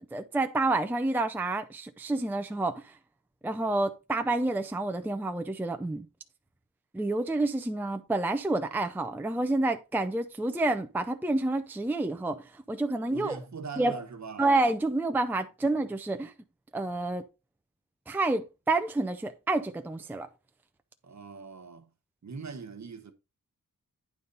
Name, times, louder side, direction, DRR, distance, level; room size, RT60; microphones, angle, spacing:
voice 1, 0.1-2.9 3.4-6.1 6.9-13.4 13.8-14.0 14.4-16.3 16.7-17.2 18.1-20.3, right 2 dB, 5° right, 0.5 m, -29 dB
voice 2, 13.1-14.5 16.1-16.2 21.0-21.9 22.2-23.1, right 5 dB, 50° right, 1.2 m, -41 dB
9.4 x 4.0 x 5.4 m
wide cardioid pair, 150°, 36 cm